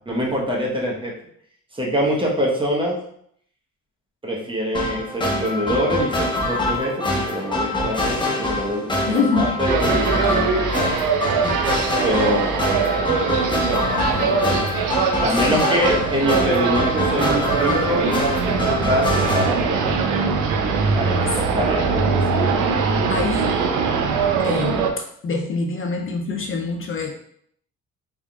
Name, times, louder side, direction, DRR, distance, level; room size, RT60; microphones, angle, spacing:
voice 1, 0.1-1.1 1.7-3.0 4.2-11.0 12.0-13.2 13.5-14.6 15.2-20.0 20.9-22.6, equal, 15° right, -2 dB, 1.0 m, -25 dB
sound 1, 4.7-19.5, left 1 dB, 15° left, 0.8 m, -25 dB
voice 2, 9.1-9.6 15.5-15.7 21.5-21.6 23.1-23.5 24.4-27.1, left 4 dB, 45° left, 2 dB, 0.5 m, -25 dB
sound 2, 9.7-24.9, right 5 dB, 85° right, 0.6 m, -22 dB
3.6 x 3.5 x 2.3 m, 0.67 s
cardioid pair, 90°, 30 cm